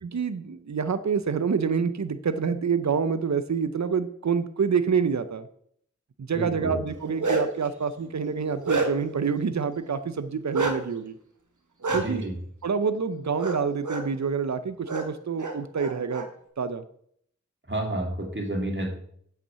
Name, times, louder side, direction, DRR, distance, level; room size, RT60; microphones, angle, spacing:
voice 1, 0.0-5.5 6.2-11.2 11.9-12.3 12.6-16.3 16.6-16.8, right 6 dB, 65° right, 12 dB, 0.7 m, -27 dB
voice 2, 6.4-6.8 12.0-12.3 17.7-18.9, right 1 dB, 40° right, 2 dB, 2.4 m, -30 dB
Bark, 6.9-7.7 8.2-9.2 10.5-10.8 11.8-12.0 13.4-13.6 13.8-14.0 14.9-15.0 15.4-16.2, right 3 dB, 90° right, 1.4 m, -27 dB
8.2 x 6.0 x 6.8 m, 0.66 s
wide cardioid pair, 45°, 30 cm